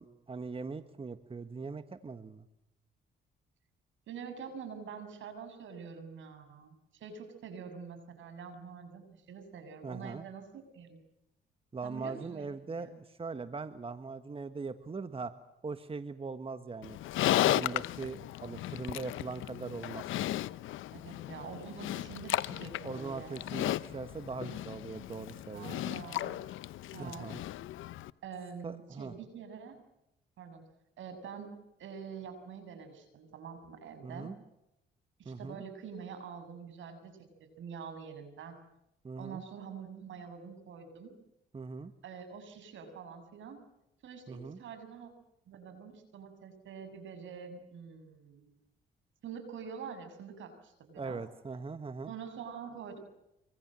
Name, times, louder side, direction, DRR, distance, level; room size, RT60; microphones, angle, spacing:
voice 1, 0.0-2.5 9.8-10.2 11.7-15.3 15.6-17.0 17.4-20.0 22.8-25.7 27.0-27.4 28.6-29.1 34.0-34.4 35.2-35.6 39.0-39.4 41.5-41.9 44.3-44.6 51.0-52.1, right 4 dB, 30° right, 10 dB, 1.6 m, -41 dB
voice 2, 4.1-11.0 11.8-12.5 12.8-13.0 20.9-23.4 24.4-24.5 25.5-26.4 26.9-27.3 28.2-29.8 30.4-30.6 31.0-31.5 31.8-34.3 35.2-37.1 37.4-38.6 39.2-41.1 42.0-43.6 44.0-45.1 45.5-48.5 49.2-51.2 52.1-53.0, right 6 dB, 75° right, 9 dB, 7.1 m, -46 dB
Livestock farm animals working animals, 16.8-28.1, left 14 dB, 85° left, 0.9 m, -35 dB
25.5 x 24.5 x 7.7 m, 0.85 s
cardioid pair, 90°, 20 cm